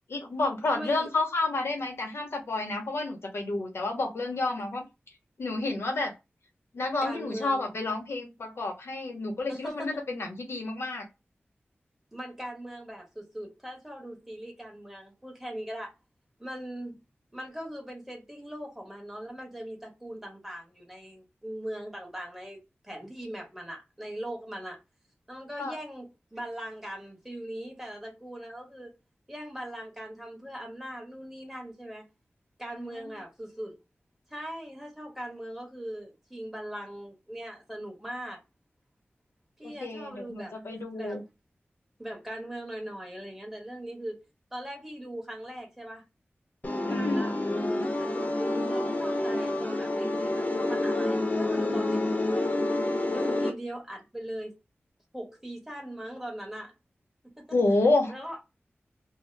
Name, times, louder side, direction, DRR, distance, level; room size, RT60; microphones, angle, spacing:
voice 1, 0.1-4.9 5.4-6.1 6.7-11.1 25.6-25.8 32.8-33.0 39.6-41.2 46.9-47.3 57.5-58.1, left 2 dB, 85° left, 0.9 m, -29 dB
voice 2, 0.6-1.1 7.0-7.7 9.5-10.0 12.1-15.9 16.4-16.9 17.3-24.8 25.3-28.9 29.3-32.0 32.6-33.8 34.3-38.4 39.6-40.5 41.0-41.2 42.0-44.2 44.5-46.0 46.8-47.3 47.6-52.4 53.1-54.6 55.1-56.7 57.2-57.5 58.1-58.4, right 1 dB, 10° right, 1.2 m, -40 dB
sound 1, 46.6-53.5, left 2 dB, 40° left, 0.7 m, -28 dB
2.8 x 2.1 x 3.2 m
wide cardioid pair, 70°, 4 cm